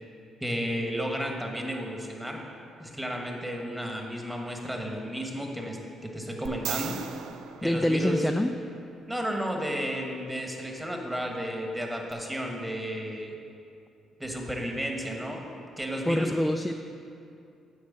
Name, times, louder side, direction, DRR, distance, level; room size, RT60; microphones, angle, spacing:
voice 1, 0.4-2.4 2.8-7.0 7.6-8.2 9.1-13.3 14.2-15.4 15.8-16.3, equal, 10° right, 1 dB, 1.4 m, -33 dB
sound 1, 6.5-8.7 12.1-12.2, right 10 dB, 85° right, 0.4 m, -38 dB
voice 2, 7.6-8.5 16.0-16.7, left 1 dB, 10° left, 5 dB, 0.3 m, -25 dB
8.7 x 4.7 x 7.4 m, 2.5 s
cardioid pair, 90°, 0 cm